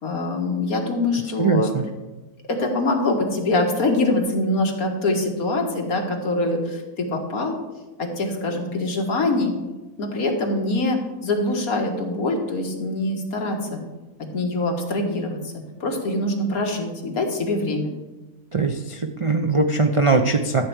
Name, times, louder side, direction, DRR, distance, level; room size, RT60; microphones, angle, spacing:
voice 1, 0.0-1.7 2.5-7.6 8.0-9.5 10.0-13.8 14.3-15.4 15.8-17.9, left 2 dB, 75° left, 2 dB, 2.1 m, -24 dB
voice 2, 1.4-1.8 18.5-20.7, right 3 dB, 60° right, 5 dB, 0.3 m, -21 dB
13.0 x 4.5 x 8.0 m, 1.1 s
omnidirectional pair, 1.5 m